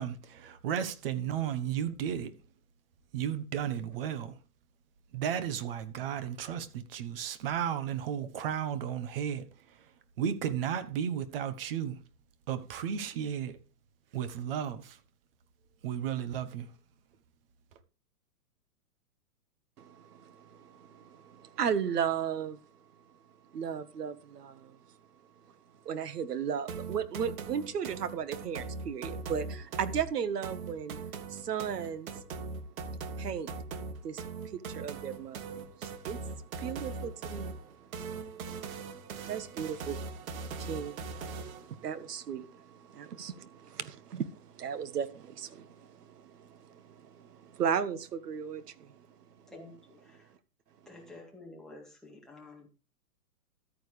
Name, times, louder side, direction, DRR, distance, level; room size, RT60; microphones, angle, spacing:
voice 1, 0.0-2.3 3.1-4.4 5.1-9.5 10.2-12.0 12.5-13.6 14.1-15.0 15.8-16.7, right 9 dB, 35° right, 1.1 m, -34 dB
voice 2, 19.8-22.6 23.5-24.8 25.8-31.0 31.3-32.2 33.2-33.5 34.0-36.2 36.6-49.1, right 7 dB, 80° right, 1.6 m, -36 dB
sound 1, 26.7-41.7, right 4 dB, 60° right, 1.9 m, -40 dB
voice 3, 49.5-50.2 50.9-52.7, left 2 dB, ahead, 2.1 m, -50 dB
13.5 x 9.3 x 3.3 m
hypercardioid pair, 160°, 47 cm